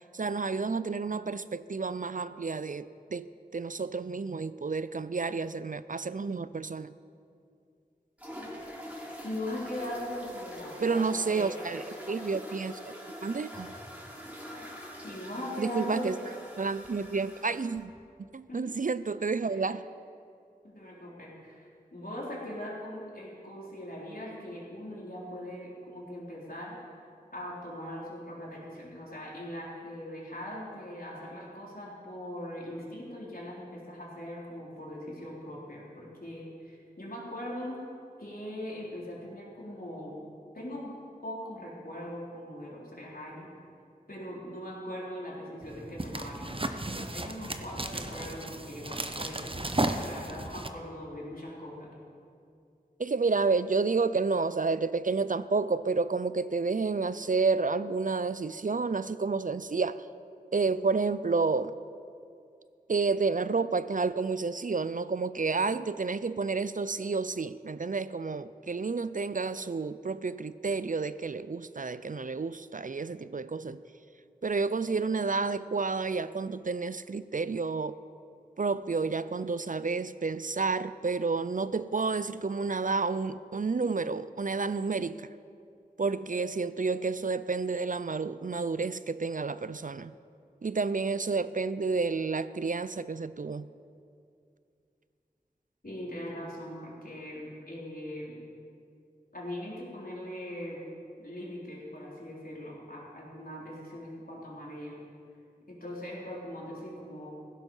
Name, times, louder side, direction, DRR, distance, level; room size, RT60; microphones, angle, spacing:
voice 1, 0.0-3.3 3.5-6.9 10.8-12.9 13.2-13.7 15.6-16.2 16.6-17.9 18.3-19.8 53.0-60.0 60.5-61.7 62.9-73.8 74.4-78.0 78.6-85.3 86.0-90.1 90.6-93.7, right 4 dB, 55° right, 15 dB, 0.4 m, -30 dB
sound 1, 8.2-17.8, equal, 10° right, 3.4 m, -44 dB
voice 2, 9.2-11.6 15.0-16.4 18.5-18.7 19.5-19.7 20.6-27.0 27.3-37.8 38.2-40.2 40.5-40.9 41.2-43.5 44.1-51.9 95.8-98.4 99.3-100.9 101.2-105.0 105.7-107.3, left 1 dB, 65° left, -5 dB, 3.7 m, -40 dB
sound 2, 45.6-50.7, right 2 dB, 35° right, 0.8 m, -34 dB
16.0 x 12.0 x 5.5 m, 2.4 s
wide cardioid pair, 40°, 16 cm